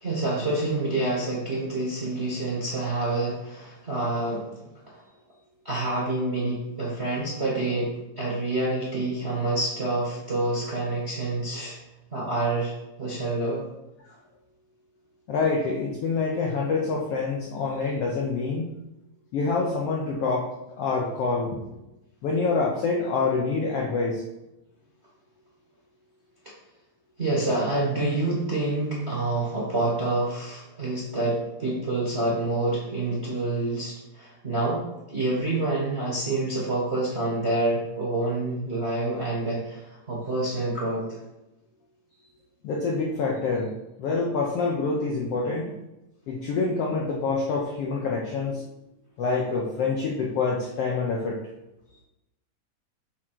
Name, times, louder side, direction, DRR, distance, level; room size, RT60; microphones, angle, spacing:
voice 1, 0.0-4.4 5.6-11.8 12.1-12.7 13.0-13.6 27.2-34.8 35.1-39.8 40.1-41.2, right 2 dB, 35° right, -5 dB, 1.1 m, -27 dB
voice 2, 15.3-18.6 19.3-20.5 20.8-21.6 22.2-24.2 42.6-43.7 44.0-45.7 46.3-48.6 49.2-51.4, left 4 dB, 75° left, -2 dB, 1.4 m, -26 dB
6.4 x 3.7 x 5.9 m, 0.93 s
omnidirectional pair, 3.7 m